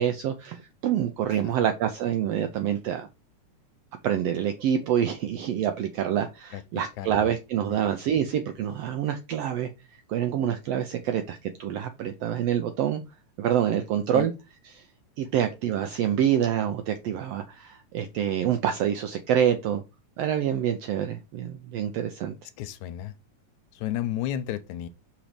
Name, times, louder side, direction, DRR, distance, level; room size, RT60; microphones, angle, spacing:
voice 1, 0.0-3.1 4.0-13.0 13.4-14.3 14.7-14.8 15.2-19.8 20.2-22.3, right 9 dB, 80° right, 1.4 m, -26 dB
voice 2, 6.5-7.3 7.7-7.8 14.1-14.3 22.6-23.1 23.7-24.9, left 12 dB, 80° left, 1.9 m, -33 dB
5.9 x 4.1 x 4.9 m
omnidirectional pair, 3.5 m